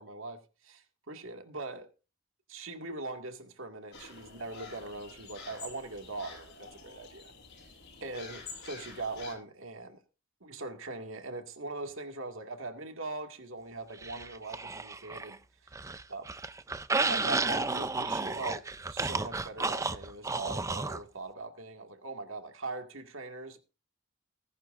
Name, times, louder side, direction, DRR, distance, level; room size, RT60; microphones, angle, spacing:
voice 1, 0.0-1.9 2.5-7.3 8.0-10.0 10.4-15.7 16.1-16.3 17.0-23.6, right 3 dB, 70° right, 2.1 m, -41 dB
sound 1, 3.9-9.3, left 4 dB, 55° left, 6.5 m, -48 dB
sound 2, 14.0-15.4 15.7-21.0, right 3 dB, 15° right, 0.5 m, -32 dB
20.5 x 11.0 x 2.6 m
head